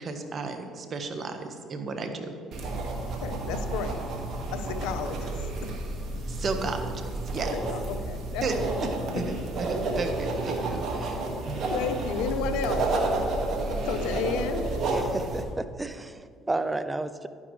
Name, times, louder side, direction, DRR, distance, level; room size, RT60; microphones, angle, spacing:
voice 1, 0.0-2.3 6.3-6.9 7.3-7.6 8.4-8.5 8.9-11.6, right 4 dB, 45° right, 6 dB, 1.2 m, -34 dB
sound 1, 2.5-15.4, right 2 dB, 60° right, 1.8 m, -30 dB
voice 2, 3.2-4.0 4.5-5.3 7.5-8.7 9.9-10.0 11.7-12.9 13.8-14.6, left 6 dB, 80° left, 8 dB, 0.7 m, -32 dB
voice 3, 14.9-17.3, right 2 dB, 15° right, 12 dB, 0.6 m, -32 dB
11.0 x 9.8 x 3.2 m, 2.2 s
supercardioid pair, 70°, 0 cm